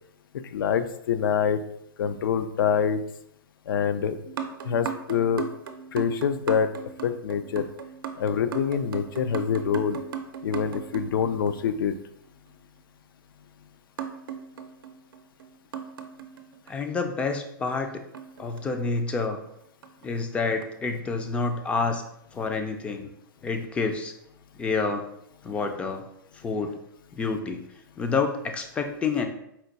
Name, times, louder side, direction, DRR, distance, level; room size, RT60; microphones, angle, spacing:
voice 1, 0.5-1.6 2.0-3.0 3.7-4.2 4.6-5.4 5.9-6.7 7.0-7.6 8.2-10.0 10.4-12.0, left 7 dB, 75° left, 11 dB, 0.4 m, -25 dB
sound 1, 4.2-11.9 14.0-16.9 18.1-19.2 19.8-20.1 20.6-20.7, right 7 dB, 75° right, 0.6 m, -38 dB
voice 2, 16.7-18.0 18.4-19.4 20.0-22.0 22.3-23.1 23.4-24.1 24.6-25.1 25.4-26.1 26.4-26.8 27.2-27.6 28.0-29.3, left 4 dB, 10° left, 5 dB, 0.3 m, -28 dB
4.3 x 2.3 x 3.9 m, 0.76 s
hypercardioid pair, 145°, 12 cm